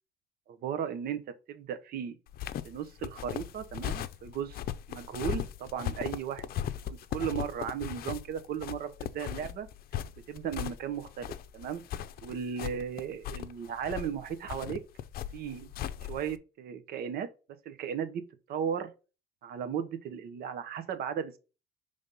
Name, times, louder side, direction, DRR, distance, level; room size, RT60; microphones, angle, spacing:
voice 1, 0.5-1.2 1.5-2.2 2.6-4.6 4.9-9.7 10.3-11.8 12.2-14.8 15.3-15.7 16.1-17.3 17.6-18.2 18.5-18.9 19.4-21.4, right 8 dB, 65° right, 0.9 m, -36 dB
sound 1, 2.3-16.4, left 11 dB, 60° left, 0.5 m, -38 dB
5.3 x 3.5 x 5.3 m
cardioid pair, 110°, 17 cm